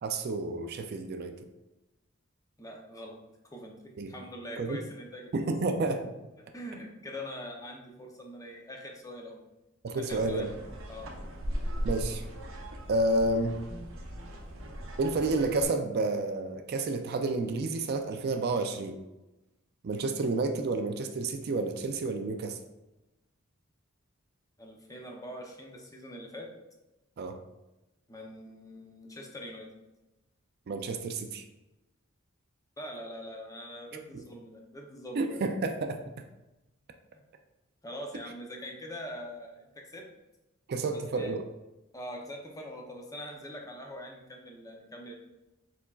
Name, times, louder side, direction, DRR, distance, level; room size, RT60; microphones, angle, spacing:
voice 1, 0.0-1.5 4.0-4.1 4.6-4.8 5.3-6.1 9.8-10.5 11.8-12.3 12.9-13.6 15.0-19.0 19.8-22.6 27.2-27.4 30.7-31.4 35.2-36.0 40.7-41.4, right 2 dB, 50° right, 6 dB, 0.4 m, -30 dB
voice 2, 2.6-3.2 3.5-5.5 6.4-9.4 9.9-10.5 10.9-11.1 24.6-26.5 28.1-29.7 32.8-35.4 37.8-40.1 40.9-41.3 41.9-45.1, equal, 15° left, 1 dB, 0.6 m, -43 dB
sound 1, 10.1-15.6, equal, 75° right, 0.8 m, -38 dB
4.4 x 4.1 x 2.4 m, 0.99 s
head